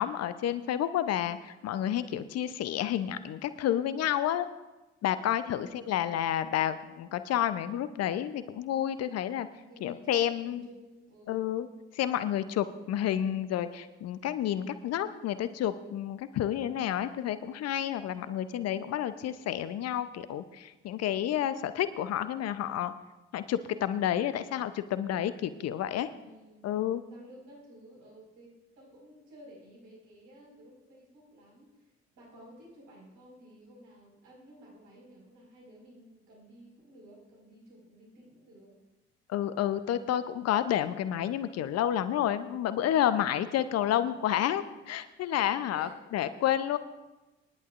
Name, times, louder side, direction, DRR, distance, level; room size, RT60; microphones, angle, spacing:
voice 1, 0.0-4.5 5.0-9.5 9.8-10.7 11.3-11.7 11.9-22.9 23.3-26.1 26.6-27.0 39.3-46.8, left 11 dB, 55° left, 13 dB, 0.7 m, -30 dB
voice 2, 5.5-5.9 9.7-11.6 26.1-26.7 27.0-38.8 45.4-46.0, right 1 dB, 65° right, -3 dB, 5.0 m, -54 dB
24.5 x 11.0 x 2.5 m, 1.1 s
figure-of-eight pair, 45°, 31 cm